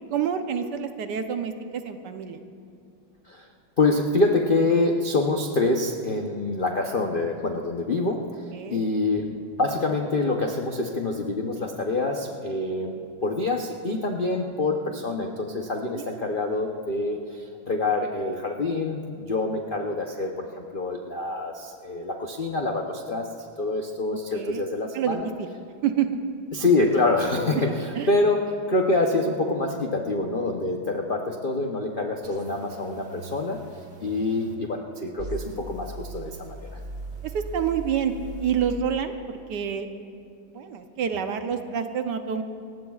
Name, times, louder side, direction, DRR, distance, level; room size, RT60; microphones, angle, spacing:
voice 1, 0.1-2.4 8.5-8.8 15.9-16.3 24.3-24.6 24.9-25.5 25.8-26.2 27.9-28.1 37.2-38.1 38.4-39.9 40.5-42.4, right 8 dB, 65° right, 7 dB, 1.2 m, -28 dB
voice 2, 3.8-8.3 8.7-23.3 23.6-25.3 26.5-33.6 34.0-36.7, left 2 dB, 70° left, 2 dB, 0.4 m, -26 dB
sound 1, 32.2-34.5 35.2-38.7, right 2 dB, 35° right, 1.7 m, -39 dB
28.5 x 15.5 x 2.4 m, 2.4 s
omnidirectional pair, 2.2 m